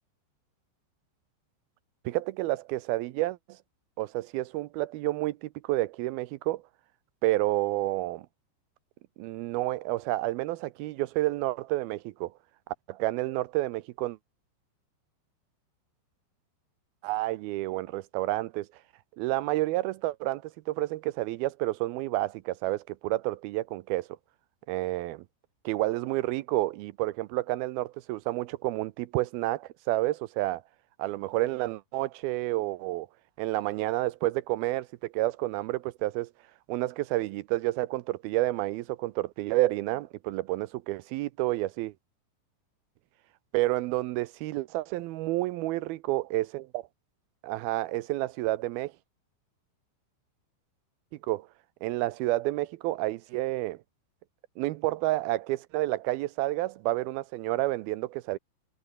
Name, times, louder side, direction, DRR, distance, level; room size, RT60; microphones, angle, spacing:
voice 1, 2.1-3.6 4.0-6.6 7.2-8.3 9.2-12.3 12.9-14.2 17.0-18.7 19.2-24.1 24.7-25.2 25.7-30.6 31.0-33.1 33.4-36.3 36.7-41.9 43.5-46.9 47.4-48.9 51.3-51.5 51.8-53.8 54.6-58.4, right 17 dB, 85° right, 2.2 m, -30 dB
omnidirectional pair, 5.1 m